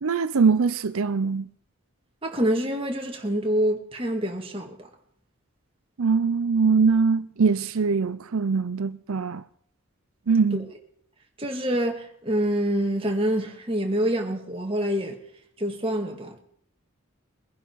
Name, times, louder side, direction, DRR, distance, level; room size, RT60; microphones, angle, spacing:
voice 1, 0.0-1.5 6.0-9.4 10.3-10.7, right 5 dB, 85° right, 0.6 m, -22 dB
voice 2, 2.2-4.9 10.5-10.6 11.4-15.2 15.6-16.4, right 1 dB, 25° right, 2.0 m, -26 dB
22.5 x 11.0 x 4.7 m
head